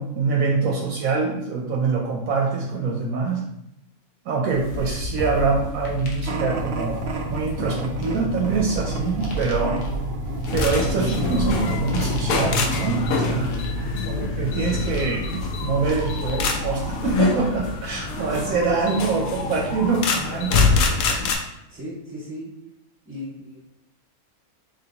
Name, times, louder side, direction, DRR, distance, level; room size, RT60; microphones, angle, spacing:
voice 1, 0.0-3.4 4.3-7.0 7.3-9.8 10.5-13.6 14.0-20.7, right 4 dB, 70° right, -1 dB, 1.0 m, -25 dB
sound 1, 4.5-16.9, left 2 dB, 90° left, 1.3 m, -32 dB
sound 2, 6.3-13.2, right 2 dB, 85° right, 0.5 m, -31 dB
sound 3, 10.5-21.4, left 3 dB, 75° left, 1.0 m, -25 dB
voice 2, 13.7-14.9 17.9-19.0 21.7-22.5 23.0-23.6, right 1 dB, 10° right, -5 dB, 1.3 m, -38 dB
4.0 x 3.3 x 2.8 m, 0.82 s
omnidirectional pair, 1.6 m